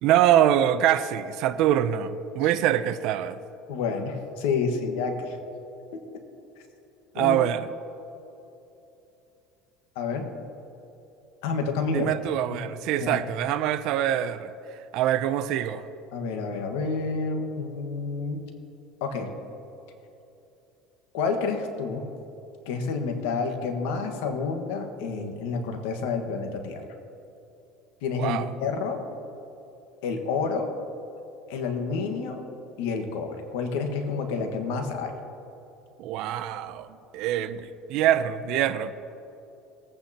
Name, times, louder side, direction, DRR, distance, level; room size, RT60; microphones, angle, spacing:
voice 1, 0.0-3.4 7.1-7.7 11.9-14.5 14.9-15.8 28.2-28.5 36.0-36.9 37.1-38.9, right 11 dB, 65° right, 11 dB, 0.5 m, -24 dB
voice 2, 3.7-5.4 7.2-7.4 9.9-10.2 11.4-12.2 12.5-12.6 13.0-13.2 16.1-18.4 19.0-19.3 21.1-22.0 22.6-26.8 28.0-29.0 30.0-30.7 31.5-32.4 32.8-35.1, left 4 dB, 85° left, 5 dB, 1.5 m, -29 dB
19.5 x 8.8 x 2.9 m, 2.9 s
supercardioid pair, 110°, 0 cm